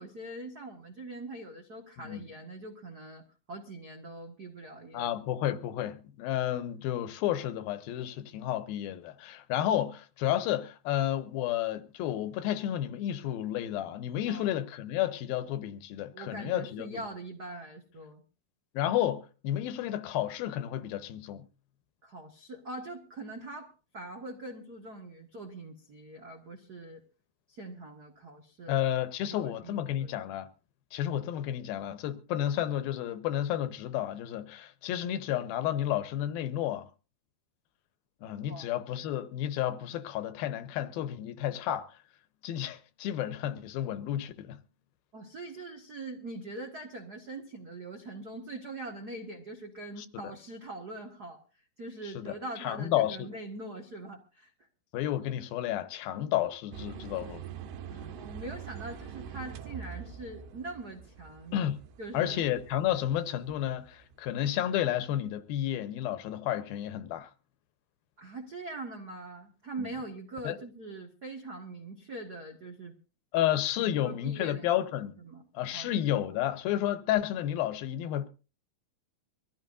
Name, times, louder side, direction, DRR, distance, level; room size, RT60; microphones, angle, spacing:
voice 1, 0.0-5.1 14.3-14.5 16.1-18.2 22.0-27.0 27.5-28.8 29.2-30.1 38.4-38.7 45.1-51.4 51.8-54.5 57.9-61.6 62.0-62.4 68.2-73.0 73.4-73.5 73.8-74.7 75.2-75.4 75.7-75.9, right 2 dB, 70° right, 0.9 m, -42 dB
voice 2, 4.9-17.0 18.7-21.4 28.7-30.5 30.9-36.9 38.2-42.0 42.4-44.6 50.0-50.3 52.2-52.3 52.6-53.3 54.9-57.4 61.5-61.8 62.1-67.3 69.8-69.9 70.4-70.6 73.3-75.1 75.5-78.3, left 12 dB, 75° left, 2.6 m, -31 dB
sound 1, 56.7-64.8, right 8 dB, 85° right, 3.2 m, -45 dB
24.0 x 14.5 x 2.6 m
omnidirectional pair, 4.5 m